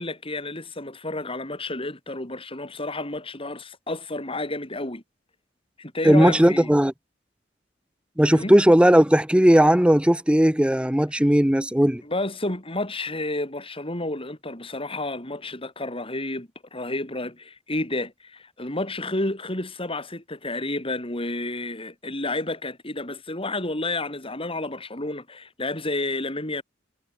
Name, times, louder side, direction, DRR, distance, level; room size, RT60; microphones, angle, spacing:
voice 1, 0.0-5.0 5.8-6.7 8.3-8.6 11.1-11.2 12.0-26.6, left 2 dB, 30° left, 5.4 m, -31 dB
voice 2, 6.0-6.9 8.2-12.0, equal, 5° right, 0.7 m, -17 dB
head